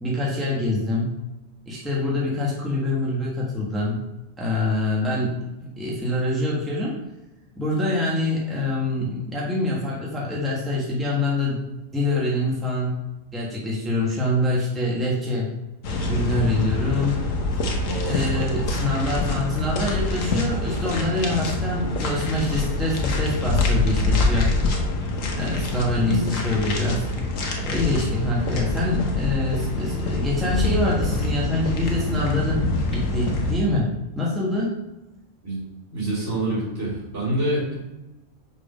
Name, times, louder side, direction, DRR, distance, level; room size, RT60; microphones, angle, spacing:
voice 1, 0.0-1.1 1.7-4.0 4.4-5.3 5.8-6.9 7.6-11.6 11.9-12.9 13.3-15.5 16.1-17.2 18.0-24.5 25.4-27.1 27.7-32.6 32.9-33.9 34.1-34.7, left 2 dB, ahead, -5 dB, 1.4 m, -25 dB
sound 1, 15.8-33.5, left 2 dB, 70° left, 1.4 m, -25 dB
voice 2, 17.8-18.4 26.0-26.4 35.4-35.6 35.9-37.7, right 1 dB, 60° right, -7 dB, 3.3 m, -26 dB
5.5 x 4.9 x 5.2 m, 0.98 s
omnidirectional pair, 1.4 m